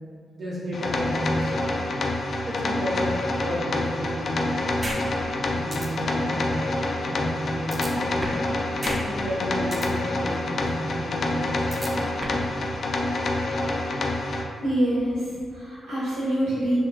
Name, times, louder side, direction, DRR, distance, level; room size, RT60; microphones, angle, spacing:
voice 1, 0.4-1.8 2.5-4.5 5.5-6.6 7.0-8.5 9.0-11.9, equal, 50° right, -8 dB, 1.0 m, -32 dB
sound 1, 0.7-14.4, left 2 dB, 65° left, 0.3 m, -27 dB
sound 2, 4.8-5.0 5.3-5.4 5.7-5.9 7.7-8.5 8.8-9.0 9.3-9.9 11.7-12.5, right 1 dB, 30° right, 0.6 m, -32 dB
voice 2, 14.6-16.8, right 1 dB, 90° right, -11 dB, 1.1 m, -25 dB
3.0 x 2.2 x 3.7 m, 2.1 s
supercardioid pair, 45°, 0 cm